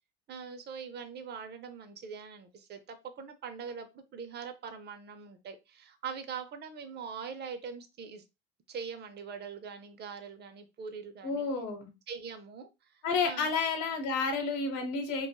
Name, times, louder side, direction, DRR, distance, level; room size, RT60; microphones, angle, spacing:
voice 1, 0.3-8.2 8.7-11.5 12.1-13.5, right 6 dB, 35° right, 7 dB, 0.6 m, -43 dB
voice 2, 11.2-11.9 13.0-15.3, left 4 dB, 65° left, 5 dB, 0.9 m, -30 dB
2.6 x 2.3 x 2.2 m, 0.26 s
supercardioid pair, 90°, 31 cm